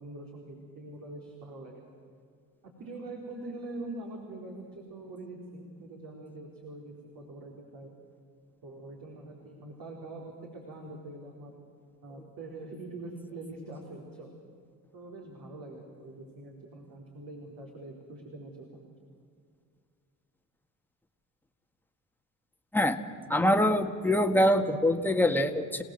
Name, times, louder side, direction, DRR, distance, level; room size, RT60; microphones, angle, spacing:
voice 1, 0.0-1.8 2.8-7.9 8.6-10.2 10.5-11.5 12.0-14.3 14.9-18.9, right 2 dB, 55° right, -1 dB, 4.4 m, -44 dB
voice 2, 23.3-25.8, left 1 dB, 5° left, 5 dB, 1.8 m, -24 dB
27.5 x 17.5 x 7.9 m, 2.2 s
supercardioid pair, 75°, 41 cm